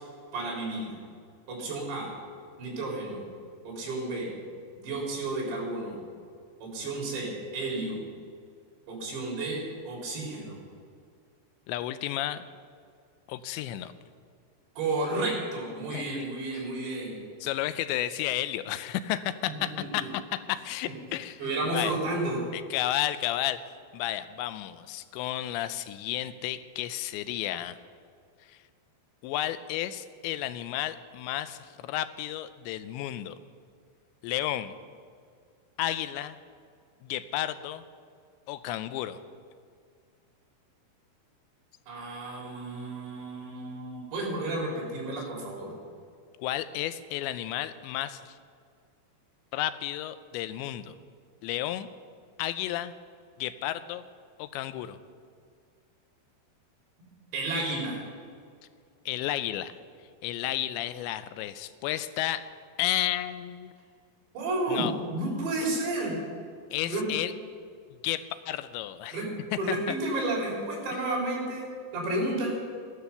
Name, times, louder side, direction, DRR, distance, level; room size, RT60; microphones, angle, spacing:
voice 1, 0.3-1.0 1.5-2.1 2.6-3.2 3.6-4.3 4.8-6.0 6.6-8.0 8.9-9.6 9.9-10.6 14.8-17.2 19.6-19.7 21.4-22.4 41.9-45.7 57.0-58.0 64.3-64.9 65.1-66.2 66.8-67.0 69.1-69.3 69.6-71.7 71.9-72.6, right 2 dB, 75° right, -3 dB, 6.0 m, -32 dB
voice 2, 11.7-12.4 13.3-13.9 15.9-16.3 16.5-16.6 17.4-20.1 20.3-22.0 22.5-23.6 23.9-27.8 28.5-28.6 29.2-33.4 34.2-34.8 35.8-36.4 37.0-37.8 38.5-39.2 46.4-48.4 49.5-50.9 51.4-51.9 52.4-52.9 53.4-54.0 54.4-55.0 59.1-59.7 60.2-62.5 62.8-63.7 64.7-64.9 66.7-67.3 68.0-69.2 69.5-69.8, left 13 dB, 85° left, 12 dB, 2.9 m, -32 dB
16.0 x 11.5 x 6.9 m, 2.2 s
omnidirectional pair, 5.1 m